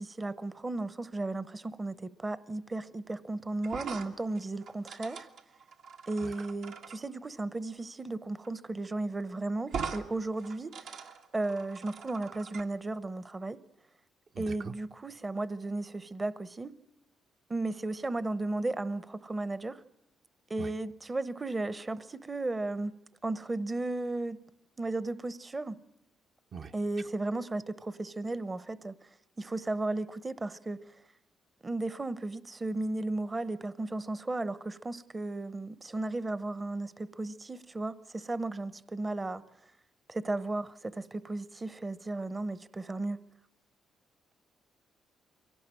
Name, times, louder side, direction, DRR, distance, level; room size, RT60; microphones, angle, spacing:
voice 1, 0.0-5.3 6.1-11.1 11.3-13.6 14.4-16.7 17.5-19.8 20.5-22.9 23.2-24.4 24.8-25.8 26.7-29.1 29.4-31.0 31.6-39.4 40.1-43.2, right 2 dB, 25° right, 0.8 m, -35 dB
sound 1, 3.6-7.0 8.4-8.6 8.8-8.9 9.7-10.0 10.4-12.6, right 6 dB, 80° right, 1.9 m, -41 dB
voice 2, 14.3-14.7 20.6-20.7 26.5-26.7, right 6 dB, 50° right, 0.8 m, -41 dB
23.5 x 18.0 x 8.9 m
cardioid pair, 90°, 0 cm